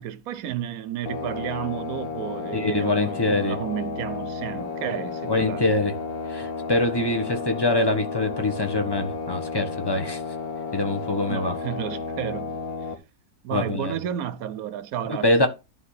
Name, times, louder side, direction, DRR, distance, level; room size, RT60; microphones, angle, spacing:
voice 1, 0.0-5.6 11.3-13.0 13.4-15.3, right 10 dB, 75° right, 1.1 m, -32 dB
sound 1, 1.1-12.9, left 4 dB, 70° left, 1.9 m, -32 dB
voice 2, 2.5-3.6 5.3-5.9 6.3-10.2 10.7-11.6 13.5-13.9 15.2-15.5, left 2 dB, 15° left, 1.4 m, -24 dB
11.0 x 4.0 x 6.6 m
omnidirectional pair, 1.6 m